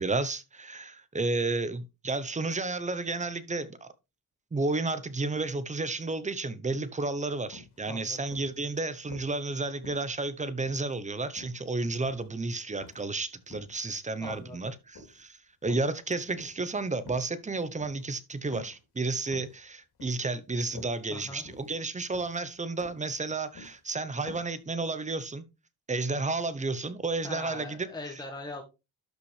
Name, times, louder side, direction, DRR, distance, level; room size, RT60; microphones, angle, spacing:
voice 1, 0.0-3.9 4.5-25.4 25.9-27.9, right 3 dB, 20° right, 0.8 m, -32 dB
sound 1, 7.1-7.2 7.5-7.8 8.3-9.4 9.8-10.9 11.4-12.3 12.8-13.1 13.4-13.8 14.2-15.2 15.7-15.9 16.3-16.6 17.0-17.3 17.8-18.0 18.5-18.8 19.1-19.6 20.0-20.3 20.6-21.0 21.5-21.8 22.1-22.4 22.8-23.1 23.4-23.8 24.3-24.5 24.8-24.9, left 3 dB, 75° left, 3.5 m, -48 dB
voice 2, 7.9-8.2 14.2-14.6 21.1-21.4 27.2-28.6, left 2 dB, 10° left, 1.5 m, -41 dB
12.0 x 5.6 x 3.2 m
cardioid pair, 135°, 39 cm